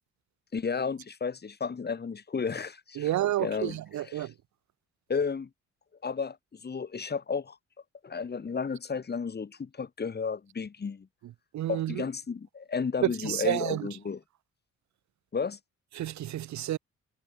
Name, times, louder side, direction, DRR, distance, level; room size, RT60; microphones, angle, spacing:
voice 1, 0.5-3.1 3.4-3.8 4.0-4.3 5.1-5.5 6.0-7.6 8.0-11.1 11.7-14.2 15.3-15.6, left 5 dB, 35° left, 2.2 m, -33 dB
voice 2, 3.0-4.3 11.5-12.0 13.2-13.9 15.9-16.8, right 13 dB, 70° right, 1.0 m, -30 dB
cardioid pair, 90°, 30 cm